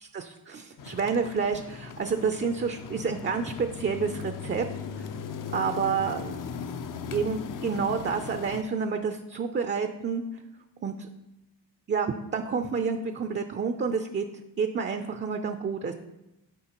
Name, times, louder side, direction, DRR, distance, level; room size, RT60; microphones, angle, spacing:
voice 1, 0.0-4.7 5.0-5.1 5.5-6.4 7.1-10.2 10.8-11.1 11.9-14.2 14.6-15.9, right 5 dB, 25° right, 7 dB, 0.5 m, -29 dB
sound 1, 0.8-8.6, left 6 dB, 50° left, 0.6 m, -38 dB
10.5 x 5.0 x 3.0 m, 0.95 s
cardioid pair, 85°, 42 cm